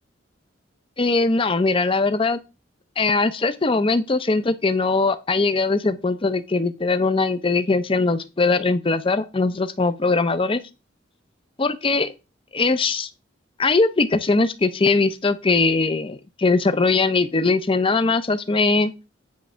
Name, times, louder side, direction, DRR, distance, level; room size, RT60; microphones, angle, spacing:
voice 1, 1.0-2.4 3.0-10.6 11.6-12.1 12.5-13.1 13.6-18.9, left 3 dB, 30° left, 0.6 m, -21 dB
9.4 x 3.3 x 6.1 m
head